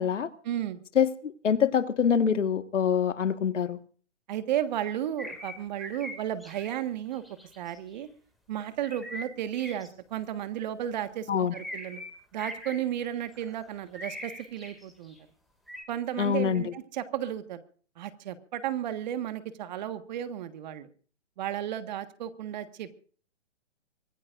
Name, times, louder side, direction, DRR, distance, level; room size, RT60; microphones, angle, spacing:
voice 1, 0.4-0.8 4.3-7.2 7.6-8.1 8.5-12.0 12.3-15.1 15.9-17.6 18.0-20.9 21.4-23.0, right 11 dB, 40° right, 11 dB, 1.6 m, -33 dB
voice 2, 1.0-3.8 11.3-11.5 16.2-16.6, left 7 dB, 80° left, 10 dB, 1.7 m, -25 dB
sound 1, 5.2-6.8 7.1-8.0 8.8-9.9 11.5-12.1 12.4-15.2 15.7-15.8, left 1 dB, ahead, 2.2 m, -42 dB
24.5 x 17.0 x 2.6 m, 0.43 s
hypercardioid pair, 155°, 36 cm